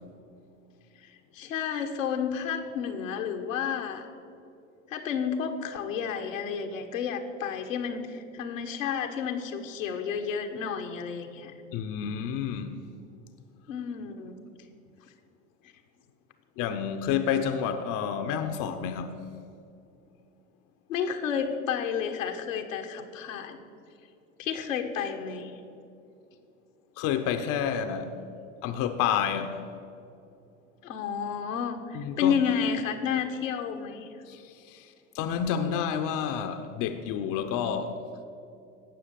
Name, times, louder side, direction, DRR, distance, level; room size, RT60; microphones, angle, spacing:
voice 1, 1.0-4.1 4.9-11.5 13.7-14.4 20.9-23.6 24.4-25.6 30.8-34.1, left 7 dB, 80° left, 1.3 m, -31 dB
voice 2, 11.7-12.8 16.6-19.2 27.0-28.2 28.6-29.6 31.9-32.3 34.3-38.0, left 8 dB, 50° left, 0.9 m, -29 dB
17.0 x 6.4 x 7.0 m
hypercardioid pair, 70°, 39 cm